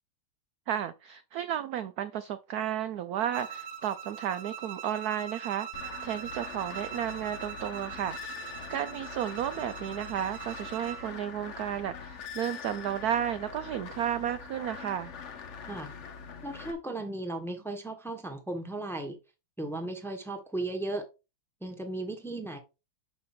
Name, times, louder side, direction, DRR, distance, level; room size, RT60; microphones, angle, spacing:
voice 1, 0.7-5.7 6.0-8.4 8.7-15.1, right 10 dB, 75° right, 0.9 m, -33 dB
Bowed string instrument, 3.3-11.1, right 8 dB, 40° right, 1.3 m, -42 dB
sound 1, 5.7-16.7, left 6 dB, 50° left, 0.9 m, -43 dB
voice 2, 16.4-19.2 19.6-21.1 21.6-22.6, right 2 dB, ahead, 1.1 m, -36 dB
6.7 x 5.4 x 4.3 m
omnidirectional pair, 2.2 m